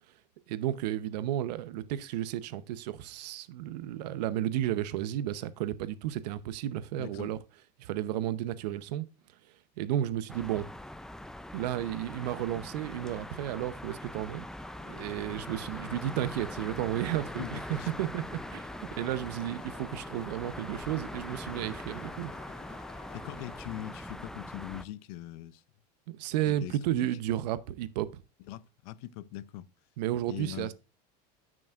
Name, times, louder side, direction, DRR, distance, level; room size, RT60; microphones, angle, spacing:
voice 1, 0.5-7.4 7.8-9.0 9.8-10.7 11.5-14.5 14.9-18.6 18.9-22.3 26.1-28.2 30.0-30.7, right 12 dB, 85° right, 0.8 m, -33 dB
voice 2, 7.0-7.4 17.4-17.9 23.1-25.6 26.4-27.1 28.5-29.7 30.3-30.7, left 14 dB, 70° left, 0.6 m, -42 dB
Wind pine, 10.3-24.8, left 1 dB, 5° left, 0.4 m, -42 dB
sound 1, 14.6-23.6, left 4 dB, 25° left, 2.4 m, -52 dB
13.0 x 6.2 x 2.4 m
supercardioid pair, 135°, 21 cm